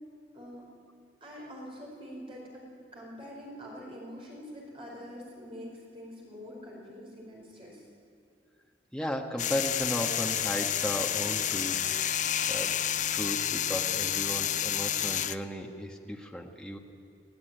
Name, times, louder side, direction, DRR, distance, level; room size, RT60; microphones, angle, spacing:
voice 1, 0.3-0.7 1.2-7.9, equal, 30° right, -2 dB, 4.8 m, -45 dB
voice 2, 8.9-11.8 12.5-12.8 13.1-16.8, equal, 5° left, 1 dB, 1.3 m, -35 dB
sound 1, 9.4-15.4, left 10 dB, 45° left, 0.5 m, -30 dB
20.0 x 17.0 x 9.1 m, 2.5 s
head